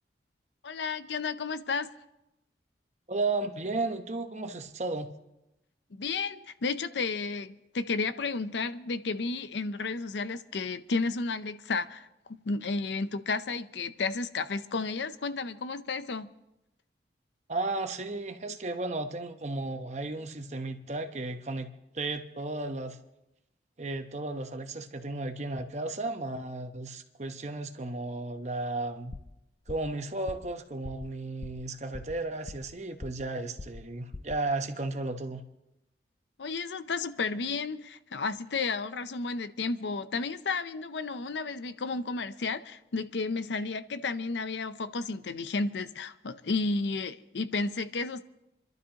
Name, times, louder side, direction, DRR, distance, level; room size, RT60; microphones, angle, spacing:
voice 1, 0.6-1.9 6.0-16.3 36.4-48.2, left 4 dB, 80° left, 0.6 m, -32 dB
voice 2, 3.1-5.1 17.5-21.7 21.9-23.0 23.8-29.1 29.7-35.4, right 2 dB, 40° right, 0.9 m, -34 dB
sound 1, 29.1-29.4 29.7-30.0 30.3-30.5 30.8-31.1 31.4-31.7 31.9-32.7 33.0-33.3 33.6-33.9 34.1-34.4, left 2 dB, 30° left, 0.4 m, -42 dB
28.5 x 12.0 x 2.9 m
head